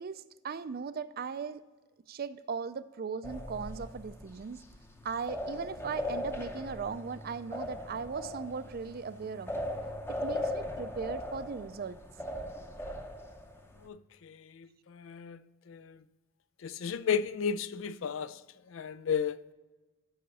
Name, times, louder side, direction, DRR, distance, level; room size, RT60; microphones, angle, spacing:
voice 1, 0.0-1.6 2.1-4.6 5.0-9.6 10.1-12.0, right 5 dB, 45° right, 0.4 m, -38 dB
sound 1, 3.2-13.9, left 1 dB, 10° left, 0.7 m, -39 dB
voice 2, 13.8-15.4 15.7-16.0 16.6-18.4 18.7-19.4, left 7 dB, 70° left, 0.4 m, -34 dB
13.5 x 5.8 x 4.1 m
head